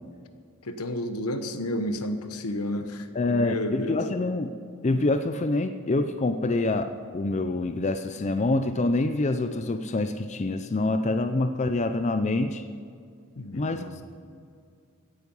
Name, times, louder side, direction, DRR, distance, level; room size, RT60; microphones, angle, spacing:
voice 1, 0.6-4.0 13.4-14.0, left 1 dB, 80° left, 1.0 m, -31 dB
voice 2, 3.1-4.5 4.8-12.6 13.5-14.0, left 2 dB, 30° left, 0.5 m, -26 dB
16.5 x 9.4 x 5.4 m
head